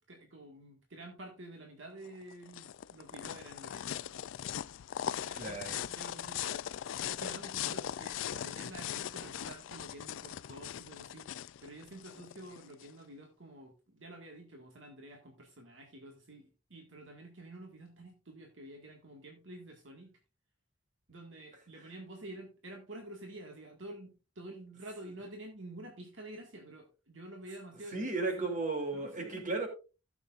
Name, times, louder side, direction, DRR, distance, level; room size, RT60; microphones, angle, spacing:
voice 1, 0.1-4.1 5.2-6.7 7.1-11.3 11.6-20.2 21.1-28.5 28.9-29.5, right 1 dB, 65° right, 2 dB, 1.8 m, -49 dB
sound 1, 2.0-12.9, left 10 dB, 70° left, 0.3 m, -40 dB
voice 2, 5.4-5.8 27.9-29.7, right 3 dB, 40° right, 4 dB, 2.7 m, -34 dB
16.0 x 7.0 x 2.5 m, 0.31 s
head